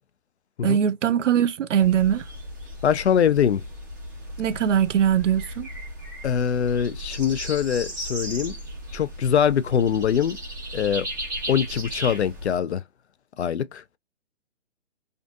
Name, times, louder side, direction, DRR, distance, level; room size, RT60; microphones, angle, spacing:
voice 1, 0.6-2.2 4.4-5.7, right 9 dB, 80° right, 0.5 m, -21 dB
sound 1, 1.8-12.6, equal, 15° right, 0.5 m, -36 dB
voice 2, 2.8-3.6 6.2-8.5 8.9-10.4 10.7-11.1 11.5-12.8 13.4-13.8, left 8 dB, 65° left, 0.5 m, -23 dB
2.6 x 2.5 x 2.4 m
hypercardioid pair, 160°, 36 cm